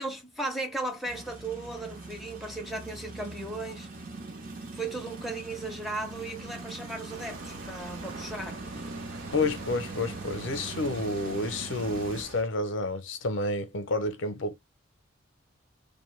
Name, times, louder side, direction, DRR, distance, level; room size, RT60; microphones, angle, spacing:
voice 1, 0.0-3.9 4.7-8.6, right 2 dB, ahead, 0.5 m, -36 dB
sound 1, 1.0-12.2, right 3 dB, 45° right, 0.7 m, -41 dB
sound 2, 7.1-12.4, right 1 dB, 70° right, 0.8 m, -46 dB
voice 2, 9.3-14.6, left 2 dB, 65° left, 0.6 m, -30 dB
2.7 x 2.1 x 3.0 m
head